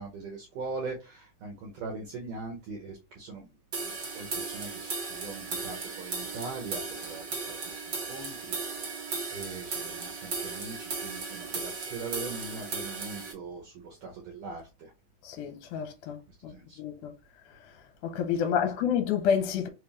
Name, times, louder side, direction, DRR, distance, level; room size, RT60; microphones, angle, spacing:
voice 1, 0.0-3.5 3.8-7.8 8.1-9.0 9.3-14.9 16.5-16.8, right 4 dB, 65° right, 1.8 m, -41 dB
sound 1, 3.7-13.3, right 4 dB, 45° right, 1.6 m, -36 dB
voice 2, 15.2-16.2 16.4-16.5 16.8-17.1 18.0-19.7, left 8 dB, 80° left, 2.2 m, -28 dB
4.7 x 3.4 x 3.0 m
omnidirectional pair, 3.6 m